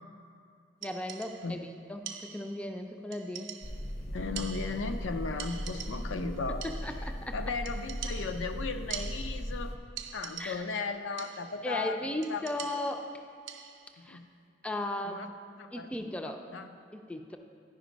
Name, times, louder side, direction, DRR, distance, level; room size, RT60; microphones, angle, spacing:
voice 1, 0.8-3.5 6.5-7.4 10.4-10.7 11.6-13.1 14.0-14.2 14.6-15.3 15.7-16.5 16.9-17.4, left 1 dB, 5° left, 5 dB, 0.3 m, -36 dB
sound 1, 0.8-1.6 2.1-2.7 3.1-3.9 4.4-5.1 5.4-6.3 6.6-7.2 7.7-9.6 10.0-10.8 11.2-11.7 12.2-14.0, right 9 dB, 70° right, 0.6 m, -44 dB
sound 2, 3.6-9.8, equal, 55° left, 0.7 m, -38 dB
voice 2, 4.1-6.6 7.3-9.8 10.1-12.5 14.0-14.3 15.0-15.3 15.6-16.7, left 4 dB, 85° left, 8 dB, 0.5 m, -36 dB
10.0 x 5.2 x 5.1 m, 2.3 s
head